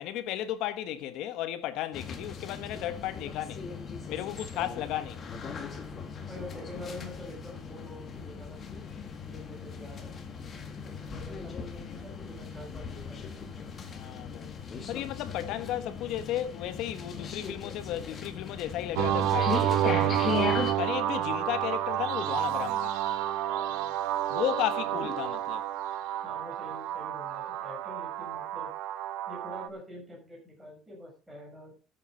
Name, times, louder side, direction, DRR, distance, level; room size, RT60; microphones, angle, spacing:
voice 1, 0.0-3.6 4.1-5.2 13.9-14.5 14.9-23.0 24.3-25.6, left 12 dB, 55° left, 1.4 m, -34 dB
sound 1, 1.9-20.7, left 6 dB, 25° left, 1.9 m, -38 dB
voice 2, 6.3-8.8 9.2-10.1 10.8-13.6 23.4-23.9 24.8-25.0 26.2-28.7 29.3-31.7, left 1 dB, 5° right, 6.8 m, -46 dB
sound 2, 19.0-29.7, right 12 dB, 85° right, 1.1 m, -30 dB
13.5 x 8.4 x 5.1 m
cardioid pair, 165°, 0 cm